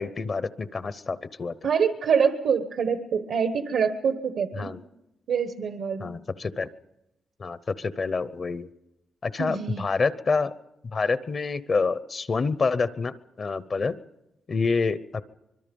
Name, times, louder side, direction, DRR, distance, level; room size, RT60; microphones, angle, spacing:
voice 1, 0.0-1.5 4.6-4.8 6.0-6.7 7.4-8.7 9.2-10.5 10.9-13.9 14.5-15.2, left 4 dB, 45° left, 15 dB, 0.7 m, -27 dB
voice 2, 1.6-4.7 5.3-6.1 9.4-9.8, right 6 dB, 80° right, 8 dB, 1.2 m, -25 dB
25.0 x 22.0 x 5.3 m, 0.91 s
cardioid pair, 100°, 0 cm